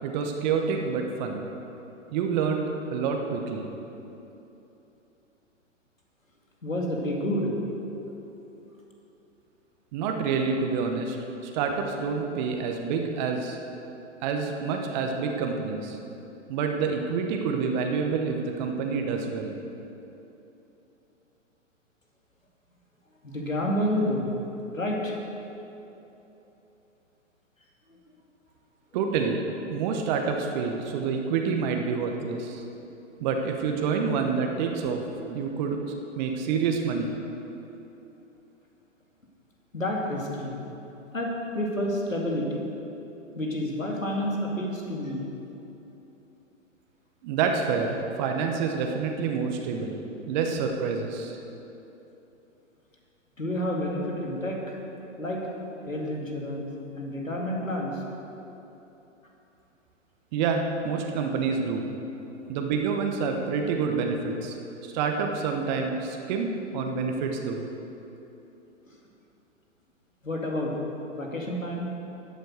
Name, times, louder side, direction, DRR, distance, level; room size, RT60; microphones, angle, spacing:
voice 1, 0.0-1.5 2.1-3.7 9.9-13.6 14.2-16.0 16.5-19.5 28.9-32.6 33.2-35.8 36.2-37.1 47.2-50.0 50.3-51.4 60.3-61.9 62.5-64.6 64.8-67.7, right 5 dB, 35° right, 3 dB, 1.1 m, -28 dB
voice 2, 6.6-7.6 8.5-8.6 23.2-24.4 24.7-25.1 39.7-40.6 41.1-42.7 43.4-45.3 53.4-54.8 55.1-56.7 57.0-58.0 68.9-69.0 70.2-70.8 71.1-71.9, left 1 dB, 90° left, -1 dB, 2.4 m, -29 dB
12.0 x 8.1 x 6.4 m, 3.0 s
figure-of-eight pair, 115°, 39 cm